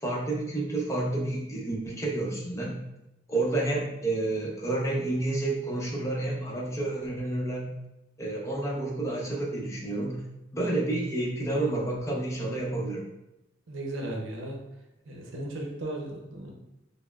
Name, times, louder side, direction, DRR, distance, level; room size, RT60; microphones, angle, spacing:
voice 1, 0.0-2.8 3.3-7.8 8.2-10.2 10.5-13.1, right 2 dB, 15° left, -3 dB, 0.7 m, -30 dB
voice 2, 13.7-14.6 15.1-16.5, right 1 dB, 80° right, 1 dB, 0.6 m, -36 dB
5.2 x 2.0 x 2.3 m, 0.91 s
head